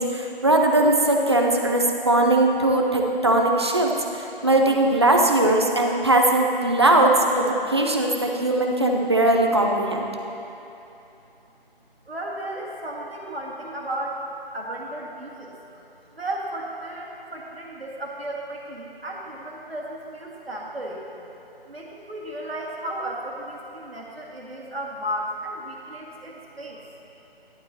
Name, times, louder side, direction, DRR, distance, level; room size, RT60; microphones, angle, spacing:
voice 1, 0.0-10.1, right 1 dB, 30° right, 1 dB, 0.5 m, -20 dB
voice 2, 12.1-14.2 14.5-15.8 16.1-21.0 21.7-26.8, right 1 dB, 90° right, -2 dB, 1.9 m, -34 dB
11.5 x 11.5 x 2.9 m, 2.9 s
figure-of-eight pair, 160°, 29 cm